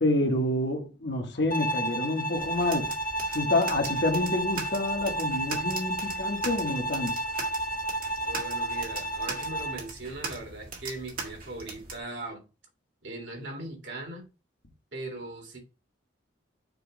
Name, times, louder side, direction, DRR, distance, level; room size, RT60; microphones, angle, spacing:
voice 1, 0.0-3.0 3.3-7.2, left 2 dB, 60° left, 1.4 m, -28 dB
Bowed string instrument, 1.5-9.9, right 1 dB, 45° left, 1.3 m, -31 dB
sound 1, 2.4-12.0, right 4 dB, 50° right, 1.9 m, -40 dB
voice 2, 8.3-12.4 13.0-14.3 14.9-15.6, right 2 dB, 70° right, 2.2 m, -39 dB
6.7 x 3.1 x 5.1 m
head